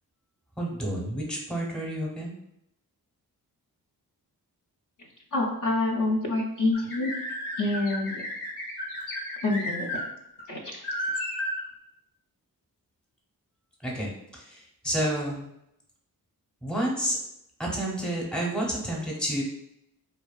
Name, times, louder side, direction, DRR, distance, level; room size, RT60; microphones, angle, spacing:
voice 1, 0.6-2.4 13.8-15.5 16.6-17.2 17.6-19.4, right 1 dB, ahead, -2 dB, 0.7 m, -30 dB
voice 2, 5.3-7.1 7.6-8.2 9.4-9.9 10.5-10.8, left 2 dB, 55° left, -1 dB, 0.5 m, -27 dB
sound 1, 6.7-10.0 10.4-10.5 10.8-11.6, left 1 dB, 80° left, 0.9 m, -33 dB
2.4 x 2.3 x 2.3 m, 0.78 s
cardioid pair, 60°, 38 cm